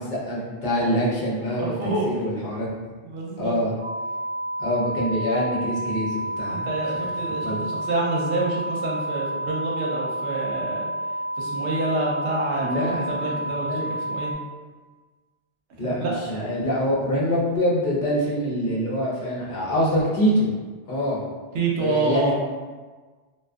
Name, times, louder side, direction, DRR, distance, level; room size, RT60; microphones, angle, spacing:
voice 1, 0.0-1.7 2.0-2.8 3.4-3.7 4.6-6.7 7.4-7.6 12.6-13.9 15.8-20.5 20.9-21.2 21.8-22.3, equal, 50° left, -5 dB, 0.7 m, -25 dB
voice 2, 1.6-2.1 3.0-3.6 6.5-10.9 11.4-14.3 15.8-16.2 21.5-22.3, right 3 dB, 75° right, -3 dB, 0.9 m, -27 dB
sound 1, 3.8-14.3, right 1 dB, 35° right, 0.9 m, -30 dB
2.3 x 2.2 x 2.4 m, 1.4 s
omnidirectional pair, 1.2 m